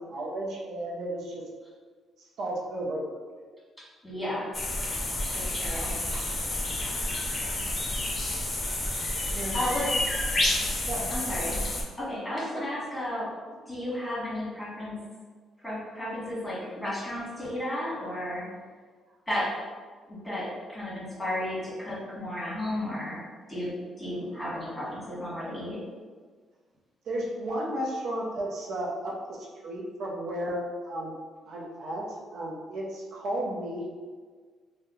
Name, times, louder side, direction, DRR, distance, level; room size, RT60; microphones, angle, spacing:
voice 1, 0.0-1.4 2.4-3.1 9.3-9.6 10.9-11.1 12.5-12.6 27.1-31.1 31.5-33.9, right 1 dB, 75° right, -4 dB, 0.6 m, -33 dB
voice 2, 3.8-5.0 5.3-6.2 6.8-6.9 9.5-9.9 11.1-11.6 12.0-13.3 13.7-15.0 15.6-18.4 19.3-19.5 20.1-23.2 23.5-23.7 24.0-25.8, left 1 dB, 5° left, -8 dB, 1.4 m, -33 dB
sound 1, 4.5-11.8, left 1 dB, 30° left, 0.6 m, -30 dB
2.7 x 2.1 x 3.6 m, 1.5 s
cardioid pair, 90°, 0 cm